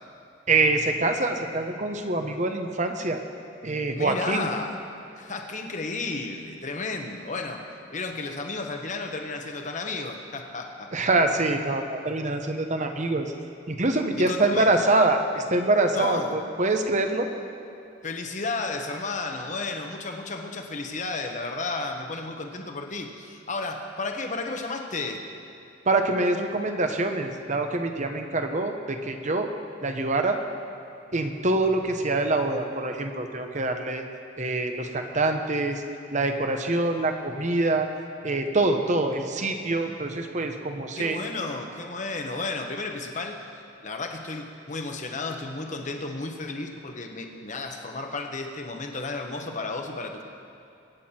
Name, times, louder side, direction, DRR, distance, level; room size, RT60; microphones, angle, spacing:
voice 1, 0.5-3.2 3.6-4.5 10.9-13.3 13.7-17.3 25.9-29.5 29.8-30.4 31.1-34.0 34.4-35.8 36.1-37.9 38.2-41.2, right 2 dB, 40° right, 5 dB, 1.0 m, -25 dB
voice 2, 3.9-4.8 5.2-7.6 7.9-10.9 14.2-14.7 15.9-16.3 18.0-25.2 41.0-43.5 43.8-50.2, left 3 dB, 40° left, 4 dB, 1.2 m, -33 dB
23.0 x 9.4 x 4.5 m, 2.8 s
head